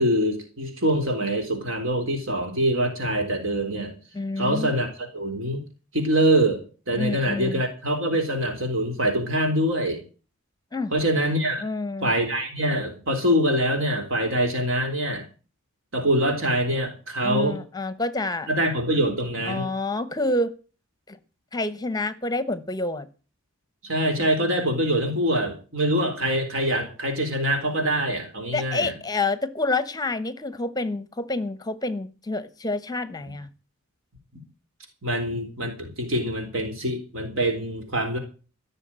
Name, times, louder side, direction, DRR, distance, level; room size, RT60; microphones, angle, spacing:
voice 1, 0.0-3.9 4.4-5.6 5.9-6.6 6.9-10.0 10.9-11.6 12.0-15.2 15.9-17.6 18.5-19.7 23.8-28.9 35.0-38.2, right 1 dB, 65° right, 3.8 m, -24 dB
voice 2, 4.1-4.7 6.9-7.6 10.7-10.9 11.6-12.1 17.2-18.5 19.5-20.5 21.1-21.2 21.5-23.1 28.5-33.5, left 2 dB, 20° left, 1.0 m, -28 dB
15.5 x 6.9 x 8.8 m
head